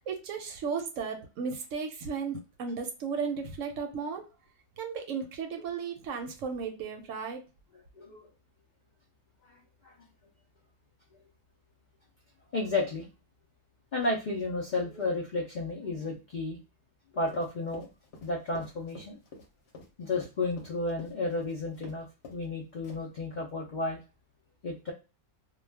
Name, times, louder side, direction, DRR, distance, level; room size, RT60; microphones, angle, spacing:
voice 1, 0.0-4.2 4.8-7.4, right 5 dB, 70° right, 5 dB, 0.9 m, -35 dB
voice 2, 8.0-8.3 9.4-9.9 12.5-13.1 13.9-16.6 17.1-17.9 18.2-19.2 20.0-24.0 24.6-24.9, left 2 dB, 75° left, -1 dB, 0.4 m, -32 dB
Run, 17.3-22.0 22.2-22.5 22.8-23.2, left 3 dB, 55° left, 0.9 m, -48 dB
2.3 x 2.2 x 3.2 m, 0.30 s
omnidirectional pair, 1.5 m